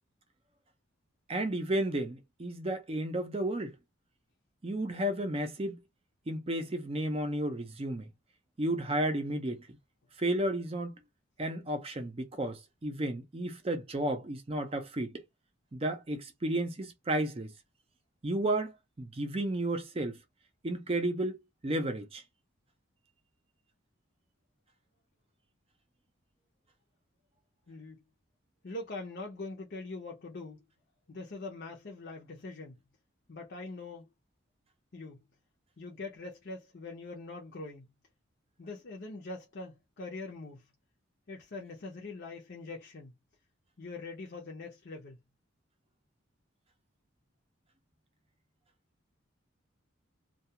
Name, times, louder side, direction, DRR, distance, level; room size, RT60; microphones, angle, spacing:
voice 1, 1.3-3.8 4.6-5.8 6.3-8.1 8.6-9.7 10.2-11.0 11.4-15.2 15.7-17.5 18.2-20.2 20.6-21.4 21.6-22.2, right 1 dB, 30° right, 0.5 m, -32 dB
voice 2, 27.7-28.0 28.6-30.6 31.1-32.8 33.3-34.1 34.9-35.2 35.8-37.9 38.6-40.7 41.3-43.1 43.8-45.2, left 3 dB, 50° left, 0.6 m, -43 dB
2.3 x 2.3 x 2.7 m
head